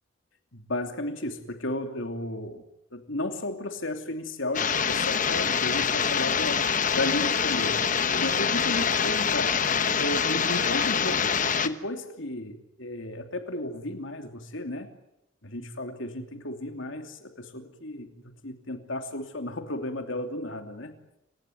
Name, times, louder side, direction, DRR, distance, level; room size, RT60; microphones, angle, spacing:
voice 1, 0.5-2.6 2.9-6.6 6.9-7.8 8.1-9.5 10.0-11.4 11.6-14.9 15.4-20.9, left 1 dB, 70° left, 6 dB, 2.9 m, -33 dB
sound 1, 4.5-11.7, left 6 dB, 40° left, 1.1 m, -25 dB
28.5 x 16.5 x 9.5 m, 0.85 s
head